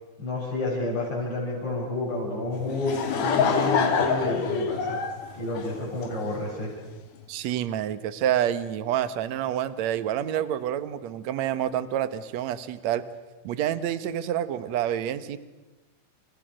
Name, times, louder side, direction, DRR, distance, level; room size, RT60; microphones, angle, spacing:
voice 1, 0.2-3.0 3.2-5.0 5.4-6.7, left 2 dB, 30° left, -5 dB, 8.0 m, -30 dB
Laughter / Crowd, 2.6-6.3, left 6 dB, 75° left, 4.1 m, -26 dB
voice 2, 7.3-13.0 13.4-15.4, right 10 dB, 65° right, 14 dB, 1.9 m, -28 dB
29.0 x 28.5 x 6.5 m, 1.1 s
omnidirectional pair, 4.5 m